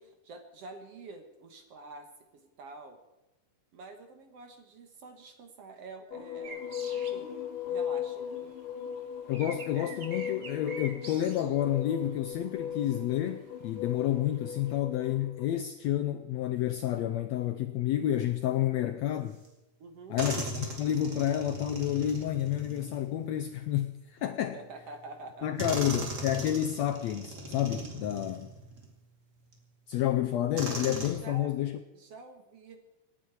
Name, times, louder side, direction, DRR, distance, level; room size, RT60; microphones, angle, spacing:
voice 1, 0.0-2.1 2.3-3.0 3.7-6.6 6.9-7.3 7.7-8.5 19.8-20.2 24.4-25.7 31.1-31.6 31.9-32.8, right 3 dB, 55° right, 1.9 m, -47 dB
sound 1, 6.1-15.5, left 8 dB, 65° left, 1.5 m, -38 dB
sound 2, 6.4-8.1 8.3-12.8 13.4-13.5 14.0-14.8, right 4 dB, 75° right, 0.8 m, -46 dB
voice 2, 9.3-19.4 20.1-24.6 25.4-28.5 29.9-31.8, left 12 dB, 80° left, 1.6 m, -30 dB
sound 3, 19.4-19.5 20.2-23.8 24.8-24.9 25.6-28.9 29.5-29.6 30.6-31.1, right 2 dB, 35° right, 2.6 m, -38 dB
26.5 x 10.0 x 4.7 m
omnidirectional pair, 3.8 m